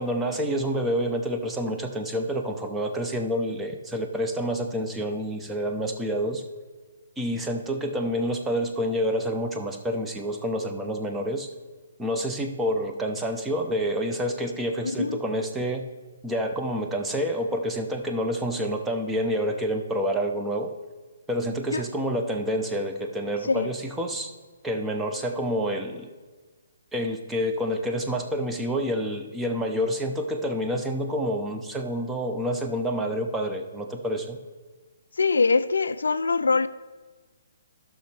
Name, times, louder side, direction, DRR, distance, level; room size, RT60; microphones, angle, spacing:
voice 1, 0.0-6.4 7.2-11.5 12.0-15.8 16.2-20.7 21.3-24.3 24.6-26.1 26.9-34.4, equal, 10° right, 4 dB, 0.7 m, -28 dB
voice 2, 14.8-15.2 21.7-21.8 23.4-23.7 35.2-36.7, left 4 dB, 70° left, 14 dB, 0.3 m, -23 dB
14.5 x 6.1 x 3.3 m, 1.3 s
figure-of-eight pair, 130°, 0 cm